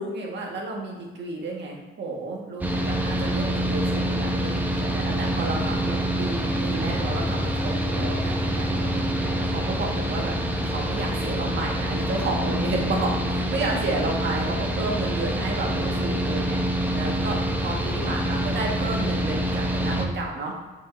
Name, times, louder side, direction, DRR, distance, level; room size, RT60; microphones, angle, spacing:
voice 1, 0.0-10.3 10.6-16.6 16.9-20.5, right 3 dB, 65° right, 0 dB, 1.6 m, -31 dB
Mechanical fan, 2.6-20.1, equal, 10° right, 0.9 m, -26 dB
7.5 x 5.4 x 2.6 m, 1.3 s
cardioid pair, 90°, 20 cm